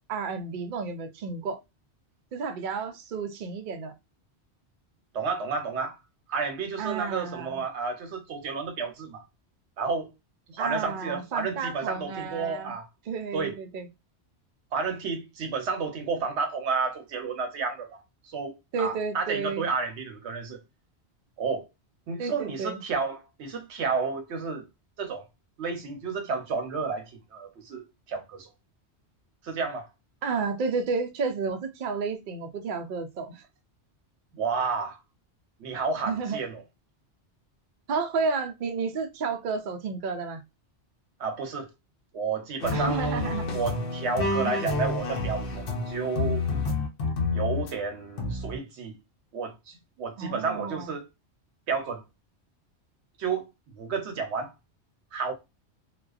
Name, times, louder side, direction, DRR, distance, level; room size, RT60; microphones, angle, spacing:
voice 1, 0.0-1.6 2.3-3.9 6.8-7.6 10.6-12.7 13.1-13.9 18.7-19.6 22.2-22.8 30.2-33.4 36.0-36.4 37.9-40.4 42.7-43.5 50.2-50.9, right 5 dB, 60° right, 0.6 m, -31 dB
voice 2, 5.1-6.0 6.3-9.2 9.8-10.1 10.5-12.9 13.3-13.6 14.7-18.0 18.3-20.6 21.4-21.7 22.1-24.7 25.0-25.3 25.6-28.5 29.4-29.9 34.3-35.0 35.6-36.6 41.2-41.7 42.1-46.4 47.3-49.0 49.3-51.1 51.7-52.0 53.2-53.5 53.7-54.5 55.1-55.3, right 5 dB, 80° right, 1.0 m, -31 dB
sound 1, 42.6-47.7 48.2-48.6, left 3 dB, 60° left, 0.8 m, -29 dB
2.4 x 2.2 x 2.3 m
omnidirectional pair, 1.1 m